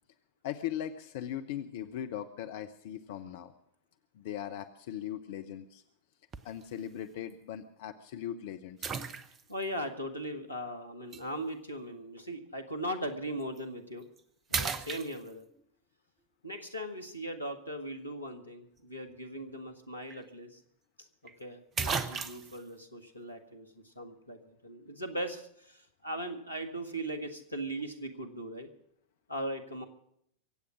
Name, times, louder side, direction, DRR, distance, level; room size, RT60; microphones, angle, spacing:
voice 1, 0.4-3.5 4.1-5.8 6.4-8.9, left 10 dB, 55° left, 9 dB, 0.7 m, -39 dB
sound 1, 6.3-6.6 7.3-7.4 8.8-9.6 11.1-11.2 13.4-13.6 14.0-14.2 14.5-15.6 19.7-19.8 20.1-20.2 21.3-21.4 21.8-22.6, right 5 dB, 25° right, 1.0 m, -35 dB
voice 2, 9.5-14.1 14.5-15.5 16.4-20.6 21.4-28.7 29.3-29.8, right 1 dB, 85° left, 6 dB, 1.7 m, -39 dB
23.5 x 8.5 x 6.2 m, 0.73 s
figure-of-eight pair, 90°, 0 cm